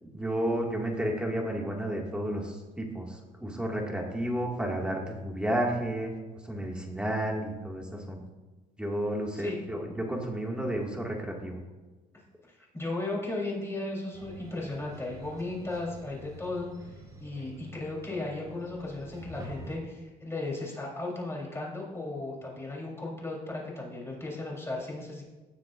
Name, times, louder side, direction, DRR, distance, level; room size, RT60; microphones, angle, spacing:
voice 1, 0.0-6.1 6.4-8.2 8.8-11.6, right 1 dB, 5° right, -1 dB, 2.1 m, -32 dB
voice 2, 12.5-16.9 17.2-25.2, left 2 dB, 15° left, -3 dB, 3.7 m, -36 dB
sound 1, 14.1-19.8, right 1 dB, 20° right, 3.7 m, -47 dB
17.5 x 7.6 x 2.6 m, 1.2 s
cardioid pair, 110°, 17 cm